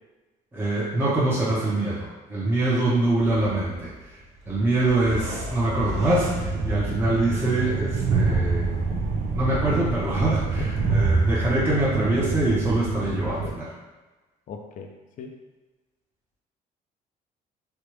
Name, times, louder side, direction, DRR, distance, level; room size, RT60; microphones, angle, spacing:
voice 1, 0.5-3.9 4.5-8.8 9.3-13.7, right 2 dB, 10° right, -8 dB, 0.9 m, -24 dB
sound 1, 2.6-11.1, equal, 90° right, 0.9 m, -39 dB
Train, 5.7-13.5, right 4 dB, 55° right, 0.5 m, -26 dB
voice 2, 14.5-14.9 15.2-15.3, left 5 dB, 50° left, 3 dB, 0.5 m, -37 dB
3.3 x 2.4 x 3.0 m, 1.2 s
cardioid pair, 110°, 17 cm